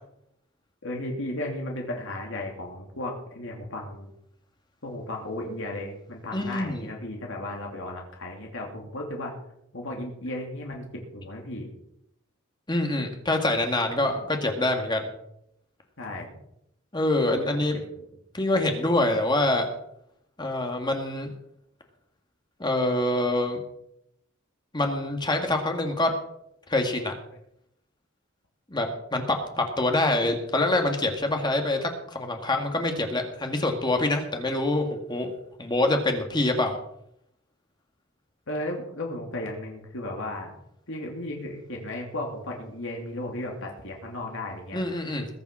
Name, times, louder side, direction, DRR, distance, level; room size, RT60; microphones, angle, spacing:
voice 1, 0.8-4.1 4.8-9.3 9.7-11.7 16.0-16.4 17.3-18.1 38.5-40.6 40.9-44.8, left 1 dB, 65° left, 0 dB, 2.9 m, -35 dB
voice 2, 6.3-6.9 12.7-15.1 16.9-17.8 18.3-19.7 20.4-21.3 22.6-23.6 24.7-26.1 26.7-27.1 28.7-35.3 35.6-36.8 44.7-45.3, left 2 dB, 20° left, 4 dB, 1.8 m, -25 dB
21.0 x 7.1 x 6.1 m, 0.76 s
head